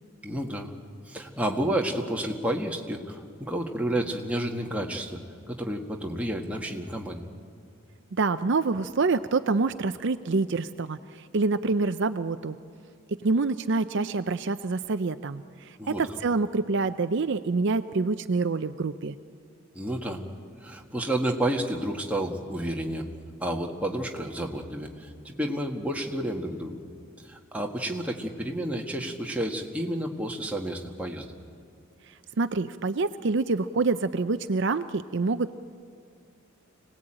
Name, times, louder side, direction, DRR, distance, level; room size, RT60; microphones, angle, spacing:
voice 1, 0.2-0.7 1.1-5.2 5.5-7.2 15.8-16.0 19.7-20.2 20.6-23.1 23.4-26.7 27.2-31.2, right 1 dB, 5° right, 0 dB, 1.7 m, -30 dB
voice 2, 8.1-12.6 13.2-19.2 32.4-35.5, right 3 dB, 55° right, 11 dB, 0.5 m, -26 dB
25.5 x 18.5 x 8.9 m, 2.3 s
head